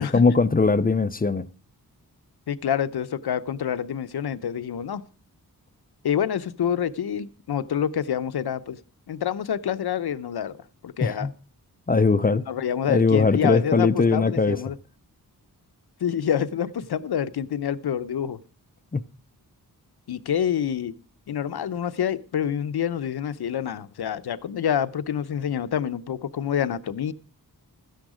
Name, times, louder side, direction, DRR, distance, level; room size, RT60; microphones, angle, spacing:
voice 1, 0.0-1.5 11.0-11.3 11.9-12.4 12.9-14.6 18.9-19.0, left 4 dB, 25° left, 0.5 m, -20 dB
voice 2, 2.5-5.0 6.0-8.8 9.1-10.6 10.8-11.3 12.3-14.8 16.0-18.4 20.1-20.9 21.3-27.1, left 9 dB, 85° left, 0.8 m, -27 dB
13.5 x 10.5 x 5.0 m
wide cardioid pair, 165°, 38 cm